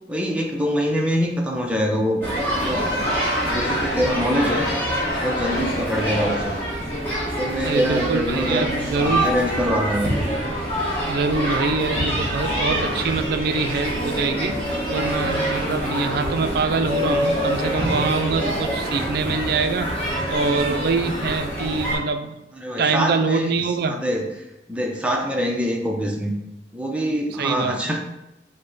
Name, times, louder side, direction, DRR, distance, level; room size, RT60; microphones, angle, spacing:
voice 1, 0.1-2.2 2.6-3.0 3.4-4.7 5.2-6.5 7.4-8.7 8.9-10.1 22.5-23.5 23.9-24.2 24.7-26.3 26.7-28.0, equal, 5° right, 0 dB, 0.5 m, -24 dB
sound 1, 2.2-22.0, equal, 10° left, 1.1 m, -25 dB
Crowd, 2.6-6.8, equal, 65° left, 0.6 m, -30 dB
voice 2, 7.6-9.3 11.0-14.6 14.9-20.0 20.3-22.3 22.8-24.0 27.4-27.8, right 4 dB, 60° right, 8 dB, 0.3 m, -24 dB
5.2 x 2.1 x 3.9 m, 0.91 s
head